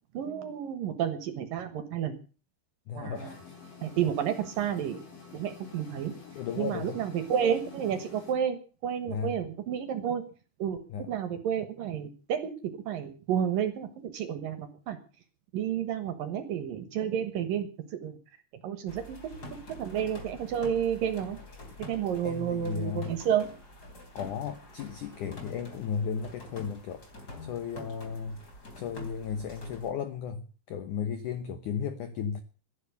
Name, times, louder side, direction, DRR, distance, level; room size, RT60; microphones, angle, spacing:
voice 1, 0.1-2.1 2.9-3.3 3.8-5.0 5.3-6.1 6.6-10.2 10.6-10.8 11.1-15.0 15.5-18.2 18.6-19.2 19.8-21.4 21.8-23.5, right 9 dB, 65° right, 2.4 m, -31 dB
voice 2, 2.9-3.5 6.3-7.0 9.1-9.4 10.9-11.1 22.2-23.2 24.1-27.1 27.4-28.4 28.8-32.4, left 7 dB, 90° left, 1.7 m, -35 dB
sound 1, 3.1-8.3, left 6 dB, 55° left, 7.0 m, -48 dB
sound 2, 18.9-29.9, left 2 dB, 25° left, 3.6 m, -47 dB
12.5 x 11.0 x 8.2 m
omnidirectional pair, 5.3 m